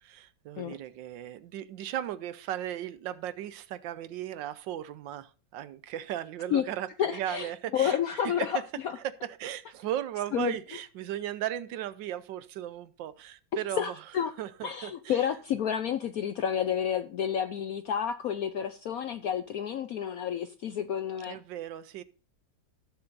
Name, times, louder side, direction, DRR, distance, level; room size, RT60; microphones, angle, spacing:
voice 1, 0.0-8.6 9.0-13.9 14.4-15.3 21.3-22.0, right 11 dB, 75° right, 1.3 m, -36 dB
voice 2, 7.0-8.6 10.3-10.5 13.8-14.3 14.6-21.4, left 9 dB, 70° left, 0.8 m, -30 dB
17.5 x 7.0 x 2.6 m
omnidirectional pair, 2.1 m